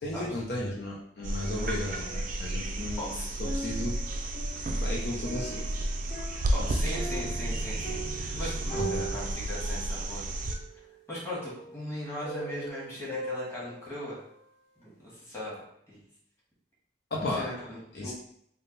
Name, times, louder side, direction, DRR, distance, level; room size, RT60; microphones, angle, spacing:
voice 1, 0.0-4.0 4.8-5.7 8.4-8.5 8.8-9.0 17.1-17.5 17.9-18.1, left 1 dB, 60° left, -4 dB, 0.7 m, -34 dB
sound 1, 1.2-10.6 12.7-12.8, right 1 dB, 50° right, 0.4 m, -32 dB
sound 2, 2.0-2.9 3.2-14.3 14.8-14.9, right 2 dB, 35° left, 1.0 m, -41 dB
voice 2, 6.5-10.3 11.1-14.2 14.8-15.5 15.9-16.0 17.2-18.1, left 1 dB, 15° left, -7 dB, 1.4 m, -38 dB
3.6 x 2.2 x 3.9 m, 0.69 s
head